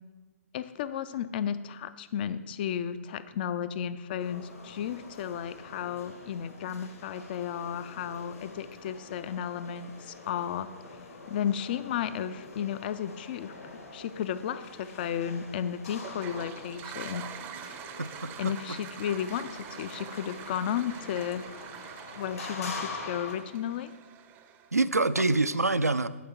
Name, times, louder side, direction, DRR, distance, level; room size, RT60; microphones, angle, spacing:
voice 1, 0.5-10.7 11.3-13.5 13.9-17.3 18.4-21.5 22.2-23.9, left 9 dB, 40° left, 14 dB, 0.3 m, -33 dB
sound 1, 4.2-23.4, left 3 dB, 65° left, 1.5 m, -45 dB
Toilet flush, 16.0-24.9, right 9 dB, 25° right, 0.5 m, -45 dB
voice 2, 18.0-18.5 24.7-26.1, right 3 dB, 85° right, 14 dB, 0.4 m, -26 dB
11.0 x 4.9 x 4.4 m, 1.3 s
figure-of-eight pair, 120°, 8 cm